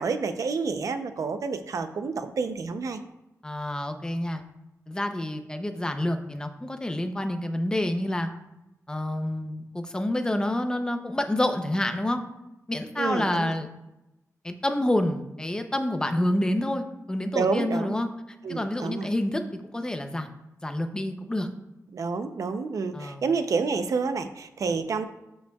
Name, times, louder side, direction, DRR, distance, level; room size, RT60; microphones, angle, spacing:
voice 1, 0.0-3.0 13.0-13.5 17.3-18.0 18.4-19.1 21.9-25.1, right 4 dB, 65° right, 9 dB, 0.6 m, -29 dB
voice 2, 3.4-4.4 4.9-8.3 8.9-12.2 12.7-13.7 14.4-18.1 18.5-20.3 20.6-21.5 22.9-23.2, left 1 dB, 15° left, 6 dB, 0.6 m, -28 dB
14.0 x 5.4 x 2.3 m, 0.92 s
wide cardioid pair, 165°, 6 cm